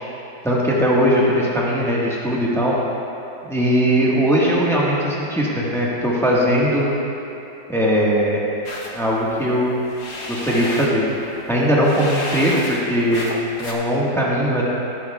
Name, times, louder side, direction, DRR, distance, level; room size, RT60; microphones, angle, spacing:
voice 1, 0.4-2.7 3.5-6.9 7.7-8.4 8.9-9.8 10.3-11.0 11.5-13.3 13.6-14.6, equal, ahead, -6 dB, 1.2 m, -19 dB
sound 1, 8.7-13.7, left 1 dB, 50° left, 1.3 m, -32 dB
16.5 x 8.9 x 2.3 m, 2.8 s
omnidirectional pair, 1.8 m